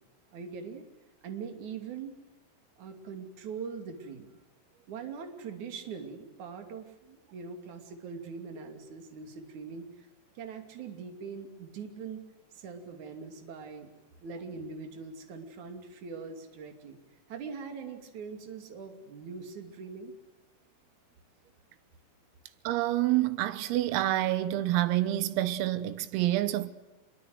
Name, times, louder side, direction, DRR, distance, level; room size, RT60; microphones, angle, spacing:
voice 1, 0.3-0.8 1.2-2.2 2.8-4.3 4.9-10.1 10.3-12.2 12.5-13.9 14.2-17.0 17.3-20.2, right 5 dB, 45° right, 3.4 m, -42 dB
voice 2, 22.7-26.7, right 15 dB, 85° right, 3.8 m, -27 dB
26.0 x 22.5 x 7.9 m
omnidirectional pair, 6.0 m